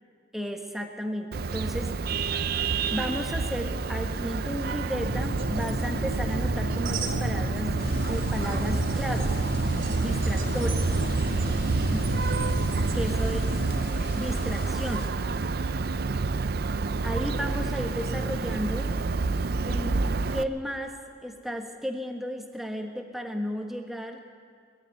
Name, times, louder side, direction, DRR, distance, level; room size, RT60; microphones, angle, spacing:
voice 1, 0.3-1.9 2.2-2.3 2.9-7.7 8.1-9.3 10.0-10.8 11.9-12.1 12.9-13.4 14.1-15.1 17.0-19.0 19.7-20.0 20.3-21.0 21.2-24.2, equal, ahead, 2 dB, 1.4 m, -33 dB
Vehicle horn car horn honking, 1.3-20.4, right 4 dB, 50° right, 0.5 m, -29 dB
sound 1, 5.0-13.8, right 1 dB, 85° right, 3.0 m, -31 dB
sound 2, 7.8-15.1, left 1 dB, 50° left, 2.1 m, -40 dB
21.0 x 13.5 x 9.2 m, 2.3 s
head